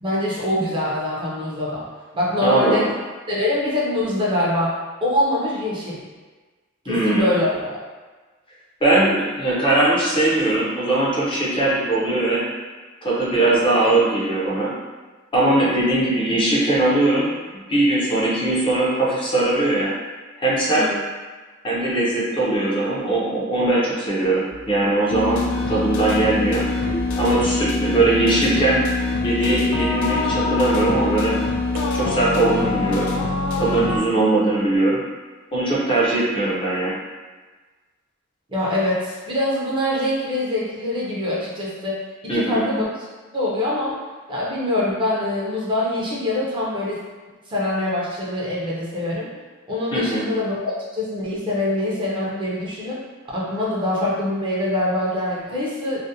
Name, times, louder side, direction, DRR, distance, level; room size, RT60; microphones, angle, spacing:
voice 1, 0.0-1.9 2.1-2.9 3.3-4.7 5.0-6.0 6.8-7.8 20.7-21.0 38.5-42.0 42.3-42.9 43.3-44.0 44.3-47.0 47.5-49.3 49.7-53.0 53.3-56.0, left 1 dB, 25° right, -6 dB, 0.5 m, -24 dB
voice 2, 2.4-2.9 6.9-7.2 8.8-12.4 13.0-14.7 15.3-19.9 20.4-20.9 21.6-26.7 27.1-28.8 29.2-31.4 31.9-33.1 33.5-35.0 35.5-36.9 42.3-42.7 49.9-50.2, right 2 dB, 25° left, -6 dB, 0.5 m, -20 dB
sound 1, 24.5-25.0 26.9-27.8 29.5-30.4 31.7-32.5, right 1 dB, 85° right, 0.4 m, -36 dB
sound 2, 25.1-34.0, left 3 dB, 85° left, 0.3 m, -24 dB
2.4 x 2.1 x 2.6 m, 1.3 s
head